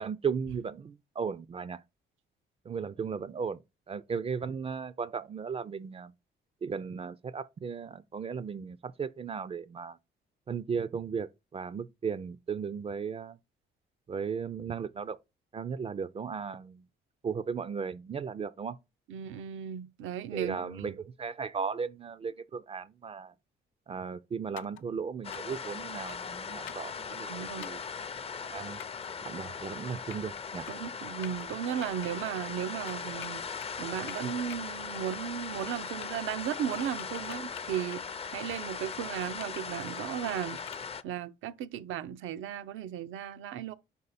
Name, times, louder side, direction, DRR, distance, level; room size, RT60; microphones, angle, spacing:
voice 1, 0.0-1.8 2.7-3.6 3.9-6.1 6.6-10.0 10.5-13.4 14.1-15.2 15.5-16.8 17.2-18.8 20.3-23.3 23.9-27.8 28.4-28.8 29.2-30.7, right 6 dB, 30° right, 0.3 m, -36 dB
voice 2, 19.1-21.0 27.3-27.7 30.7-40.6 41.0-43.7, right 10 dB, 85° right, 0.6 m, -36 dB
sound 1, 24.6-24.8 25.3-25.6 26.1-26.3 26.7-26.9 27.6-27.9 28.8-29.1 29.8-30.4 30.7-30.9 31.2-31.5 31.8-32.1 32.9-33.8 34.1-34.6 34.9-35.4 35.7-36.3 36.8-38.4 38.8-39.0 39.4-40.9, left 12 dB, 80° left, 0.5 m, -48 dB
sound 2, 25.2-41.0, left 6 dB, 30° left, 0.5 m, -39 dB
5.5 x 4.7 x 4.1 m
cardioid pair, 90°, 20 cm